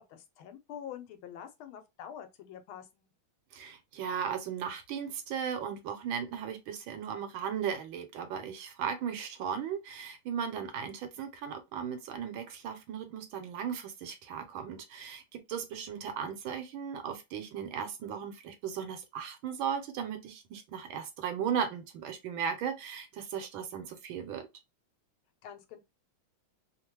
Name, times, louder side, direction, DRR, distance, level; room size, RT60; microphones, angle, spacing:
voice 1, 0.1-3.1 25.4-25.8, left 9 dB, 85° left, 1.5 m, -46 dB
voice 2, 3.5-24.5, right 7 dB, 75° right, 1.5 m, -36 dB
3.5 x 2.2 x 3.0 m
omnidirectional pair, 2.3 m